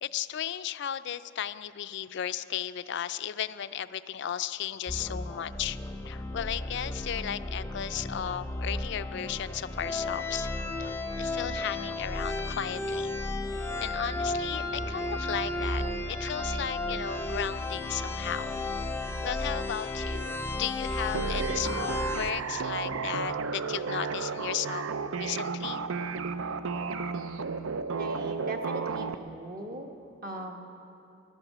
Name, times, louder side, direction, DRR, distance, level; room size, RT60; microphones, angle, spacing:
voice 1, 0.0-5.8 6.0-10.5 10.8-13.2 13.5-18.6 19.2-24.8 25.1-25.8, left 9 dB, 55° left, 13 dB, 0.4 m, -35 dB
sound 1, 4.9-22.3, left 2 dB, 10° left, 0.6 m, -33 dB
sound 2, 21.1-29.1, right 5 dB, 80° right, 0.5 m, -33 dB
voice 2, 28.0-29.9 30.2-30.6, right 1 dB, 45° right, 2 dB, 1.1 m, -40 dB
15.5 x 12.0 x 7.3 m, 3.0 s
head